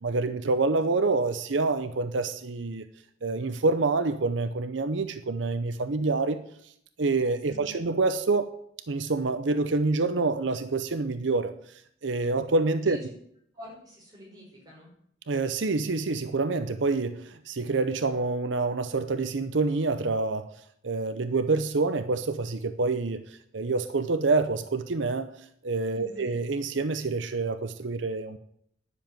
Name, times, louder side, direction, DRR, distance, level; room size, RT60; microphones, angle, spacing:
voice 1, 0.0-2.8 3.2-6.4 7.0-8.5 8.9-11.5 12.0-13.0 15.3-20.5 20.8-25.3 25.6-28.4, right 3 dB, 80° right, 11 dB, 0.7 m, -27 dB
voice 2, 13.5-14.9 25.9-26.3, equal, 20° right, -3 dB, 5.7 m, -47 dB
10.5 x 7.2 x 9.1 m, 0.69 s
head